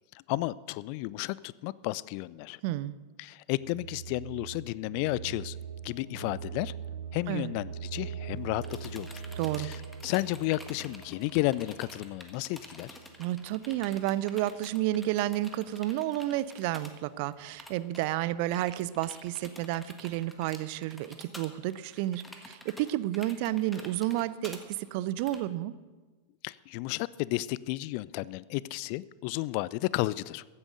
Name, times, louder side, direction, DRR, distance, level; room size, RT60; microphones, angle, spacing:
voice 1, 0.3-2.6 3.2-5.6 5.8-6.7 7.1-9.2 9.6-13.0 26.4-30.5, left 19 dB, 45° left, 21 dB, 0.3 m, -32 dB
voice 2, 2.6-3.0 7.3-7.5 9.4-9.7 13.2-25.7, right 15 dB, 45° right, 17 dB, 0.5 m, -31 dB
sound 1, 3.6-13.4, right 7 dB, 75° right, 1.2 m, -42 dB
sound 2, 8.4-16.9 17.2-17.3 17.6-18.1 18.5-25.4, left 1 dB, 5° left, 1.5 m, -49 dB
15.0 x 8.7 x 6.5 m, 1.3 s
figure-of-eight pair, 90°, 0 cm